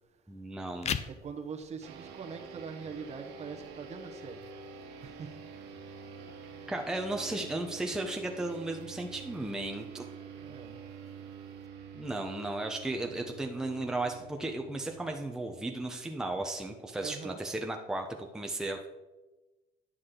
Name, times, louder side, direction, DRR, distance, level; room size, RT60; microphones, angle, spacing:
voice 1, 0.3-0.9 6.7-10.1 11.9-18.9, right 2 dB, 5° right, 3 dB, 0.7 m, -35 dB
sound 1, 0.7-11.7, left 8 dB, 40° left, 0.5 m, -46 dB
voice 2, 1.1-4.4 5.0-5.4 10.3-10.7 16.9-17.4, right 6 dB, 40° right, 4 dB, 1.0 m, -43 dB
sound 2, 1.8-16.6, right 6 dB, 90° right, 1.2 m, -48 dB
9.8 x 6.2 x 3.8 m, 1.1 s
cardioid pair, 110°, 17 cm